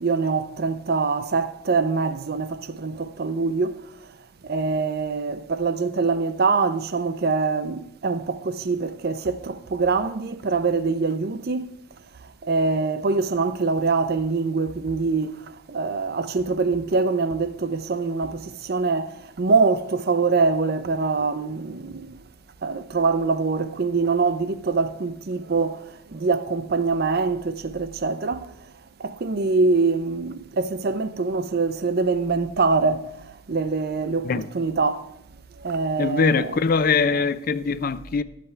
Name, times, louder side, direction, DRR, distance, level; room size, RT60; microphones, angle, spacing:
voice 1, 0.0-3.8 4.5-11.7 12.4-15.4 15.7-19.1 19.4-22.1 22.6-25.8 26.1-28.4 29.0-33.0 33.5-34.3 34.5-35.0 35.6-36.5, right 4 dB, 50° right, 0.5 m, -24 dB
voice 2, 36.0-38.2, left 5 dB, 45° left, 0.4 m, -22 dB
12.0 x 7.6 x 4.4 m
head